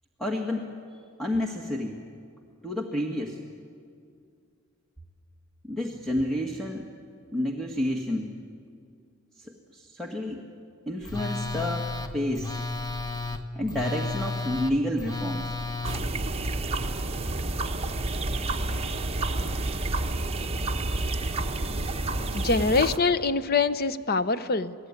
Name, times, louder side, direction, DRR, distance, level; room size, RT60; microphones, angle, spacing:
voice 1, 0.2-0.7 1.2-2.0 2.6-3.4 5.6-6.9 7.3-8.3 9.4-10.4 10.9-11.9 12.1-12.6 13.6-15.6, left 1 dB, ahead, -2 dB, 1.7 m, -30 dB
Telephone, 11.0-16.0, left 3 dB, 20° left, 1.2 m, -32 dB
sound 1, 15.8-23.0, right 2 dB, 30° right, 1.2 m, -29 dB
voice 2, 22.3-24.8, left 4 dB, 45° left, 14 dB, 0.8 m, -24 dB
27.5 x 19.5 x 9.7 m, 2.3 s
head